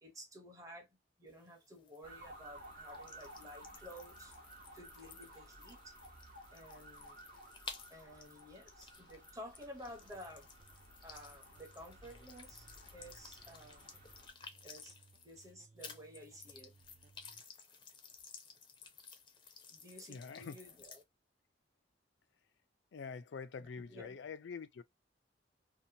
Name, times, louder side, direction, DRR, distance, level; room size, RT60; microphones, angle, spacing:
voice 1, 0.0-4.3 4.7-6.0 6.5-7.2 7.9-10.5 11.0-14.0 14.6-15.0 15.2-16.7 19.7-21.0 23.6-24.2, equal, 20° right, 0.8 m, -53 dB
sound 1, 1.3-15.5 15.8-21.0, left 5 dB, 25° left, 0.5 m, -55 dB
sound 2, 2.0-14.3, right 1 dB, 50° right, 1.0 m, -56 dB
sound 3, 9.9-17.4, right 3 dB, 35° right, 0.4 m, -65 dB
voice 2, 20.1-20.6 22.9-24.8, left 5 dB, 80° left, 0.4 m, -45 dB
2.8 x 2.2 x 2.7 m
head